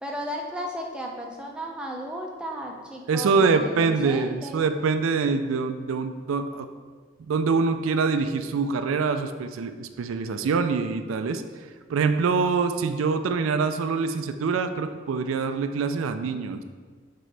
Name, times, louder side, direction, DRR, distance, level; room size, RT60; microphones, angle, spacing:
voice 1, 0.0-4.7, equal, 5° right, 0 dB, 0.5 m, -35 dB
voice 2, 3.1-6.7 7.3-11.4 11.9-16.6, right 4 dB, 90° right, 9 dB, 0.4 m, -25 dB
6.4 x 4.5 x 3.3 m, 1.5 s
head